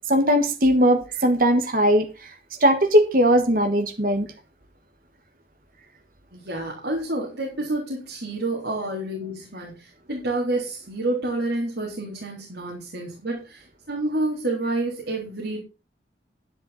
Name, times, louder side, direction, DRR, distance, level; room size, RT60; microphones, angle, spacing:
voice 1, 0.1-2.1 2.6-4.3, equal, 50° right, 1.5 m, -19 dB
voice 2, 6.3-15.6, right 2 dB, 65° right, 3.6 m, -29 dB
11.0 x 10.0 x 4.2 m
head